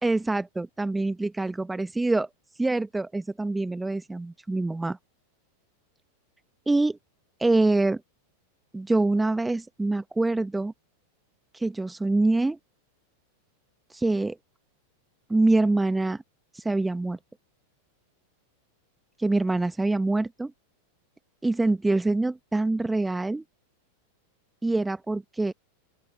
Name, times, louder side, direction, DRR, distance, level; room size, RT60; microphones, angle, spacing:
voice 1, 0.0-2.3 2.6-5.0 6.7-7.0 7.4-8.0 8.7-10.7 11.5-12.6 13.9-14.4 15.3-16.2 16.5-17.2 19.2-20.5 21.4-23.4 24.6-25.5, right 2 dB, 5° right, 1.4 m, -25 dB
open air
figure-of-eight pair, 90°, 0 cm